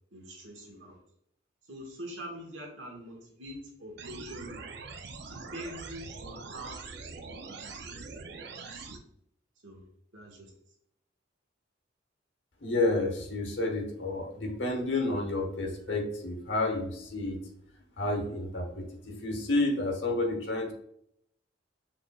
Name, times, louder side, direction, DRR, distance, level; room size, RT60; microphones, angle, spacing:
voice 1, 0.1-1.0 1.7-4.6 5.3-6.8 7.3-8.0 8.4-9.0 9.6-9.8 10.1-10.5, equal, 80° right, 0 dB, 1.5 m, -44 dB
sound 1, 4.0-9.0, right 4 dB, 60° right, 0.6 m, -43 dB
voice 2, 12.6-17.4 18.0-20.7, left 2 dB, 70° left, 3 dB, 1.0 m, -30 dB
6.0 x 3.7 x 2.3 m, 0.72 s
head